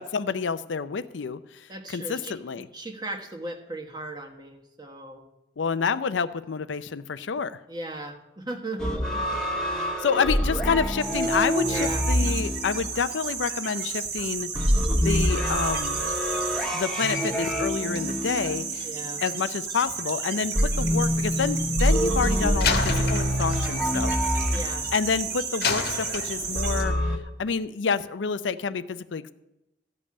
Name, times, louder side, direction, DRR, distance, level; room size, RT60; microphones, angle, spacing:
voice 1, 0.0-2.7 5.6-7.6 9.8-14.5 14.9-16.0 16.7-18.9 19.2-24.1 24.9-26.9 27.4-29.3, left 5 dB, 85° left, 13 dB, 0.5 m, -28 dB
voice 2, 1.7-2.4 2.7-5.3 7.7-9.4 11.6-12.1 18.8-19.2 24.5-24.9, right 2 dB, 25° right, 2 dB, 1.3 m, -37 dB
sound 1, 8.8-13.4 14.5-19.3 20.6-25.2 26.6-27.2, equal, 5° left, 1.2 m, -26 dB
sound 2, 11.0-26.8, right 5 dB, 60° right, 1.8 m, -33 dB
Slam, 22.6-25.0 25.6-26.8, left 5 dB, 60° left, 1.2 m, -30 dB
14.0 x 5.3 x 8.6 m, 0.92 s
head